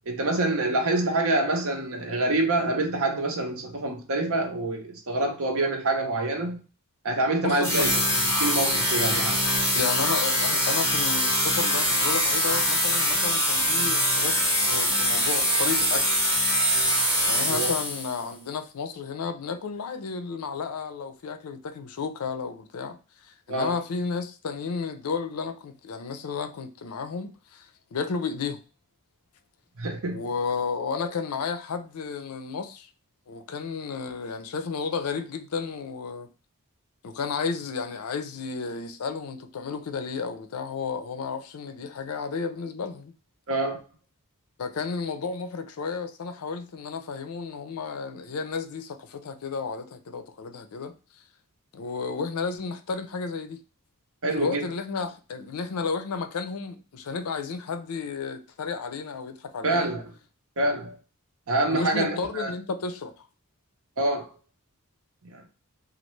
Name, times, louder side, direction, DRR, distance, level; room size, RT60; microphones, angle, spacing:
voice 1, 0.1-6.6 7.0-7.9 8.4-9.4 17.5-17.7 23.5-23.7 29.8-30.2 30.9-31.0 43.5-43.8 54.2-54.7 59.6-60.0 60.6-60.9 61.5-62.5 64.0-64.3 65.2-65.5, right 2 dB, 65° right, 0.9 m, -26 dB
voice 2, 7.4-7.9 9.1-9.2 9.7-14.4 14.6-16.0 17.3-23.0 23.2-28.6 30.1-32.9 33.3-36.3 37.0-43.1 44.6-51.2 51.7-53.6 54.4-59.9 61.7-63.1, left 5 dB, 75° left, 0.5 m, -32 dB
sound 1, 7.6-18.2, equal, 15° left, 1.6 m, -23 dB
3.2 x 2.4 x 3.1 m
head